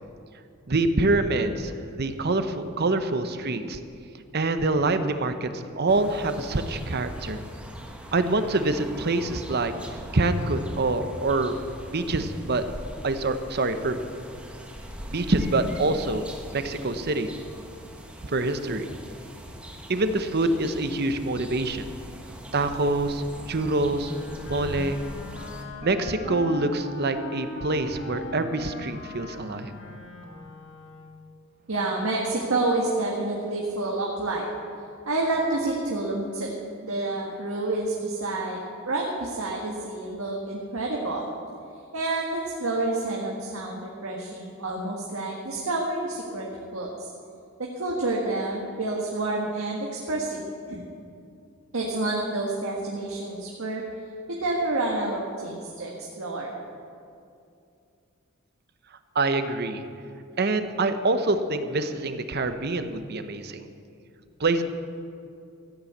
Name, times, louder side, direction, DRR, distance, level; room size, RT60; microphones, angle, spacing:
voice 1, 0.7-3.8 4.3-7.4 8.1-9.7 10.1-11.5 11.9-12.6 13.0-14.0 15.1-16.2 16.5-17.3 18.2-18.9 19.9-21.9 22.5-24.1 24.5-25.0 25.8-29.7 59.1-59.8 60.4-63.7 64.4-64.6, right 2 dB, 50° right, 9 dB, 0.8 m, -25 dB
sound 1, 5.9-25.7, equal, 5° right, 1.3 m, -41 dB
Wind instrument woodwind instrument, 24.0-31.3, left 2 dB, 60° left, 1.4 m, -40 dB
voice 2, 31.7-34.5 35.0-36.5 36.8-38.6 38.8-41.3 41.9-46.5 46.7-47.1 47.6-50.4 50.7-50.8 51.7-53.8 54.3-55.9 56.2-56.5, right 2 dB, 85° right, -2 dB, 1.7 m, -28 dB
14.5 x 8.7 x 8.0 m, 2.5 s
head